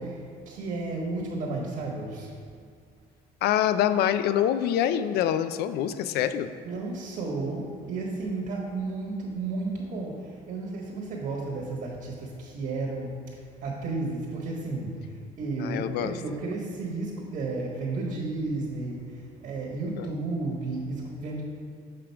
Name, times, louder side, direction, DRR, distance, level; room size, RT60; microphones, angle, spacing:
voice 1, 0.0-2.3 6.6-21.4, right 3 dB, 60° right, -3 dB, 1.3 m, -33 dB
voice 2, 3.4-6.5 15.6-16.1 20.0-20.1, left 10 dB, 70° left, 11 dB, 0.4 m, -25 dB
6.7 x 3.7 x 5.7 m, 2.2 s
cardioid pair, 110°, 17 cm